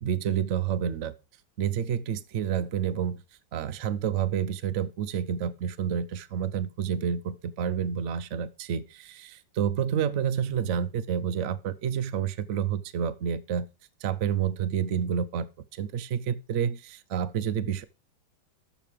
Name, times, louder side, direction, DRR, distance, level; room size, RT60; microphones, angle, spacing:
voice 1, 0.0-1.1 1.6-3.2 3.5-13.7 14.0-15.5 15.8-17.8, right 8 dB, 85° right, 0.6 m, -29 dB
13.5 x 5.2 x 5.0 m
omnidirectional pair, 2.2 m